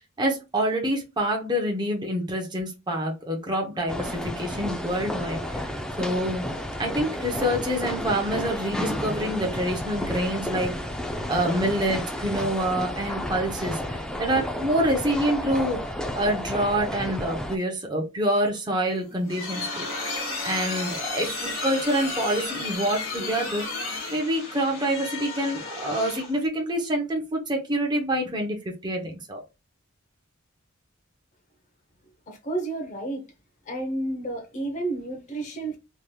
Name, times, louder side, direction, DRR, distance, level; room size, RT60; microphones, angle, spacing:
voice 1, 0.2-5.7 6.0-6.4 6.8-10.7 11.3-15.8 16.1-19.9 20.4-28.6 28.8-29.4, right 1 dB, 20° right, 0.7 m, -27 dB
sound 1, 3.9-17.6, left 1 dB, 5° left, 0.3 m, -32 dB
sound 2, 18.9-26.4, left 3 dB, 80° left, 1.6 m, -33 dB
voice 2, 32.3-33.3 33.6-35.8, right 2 dB, 35° left, 0.7 m, -31 dB
3.2 x 2.8 x 2.2 m
head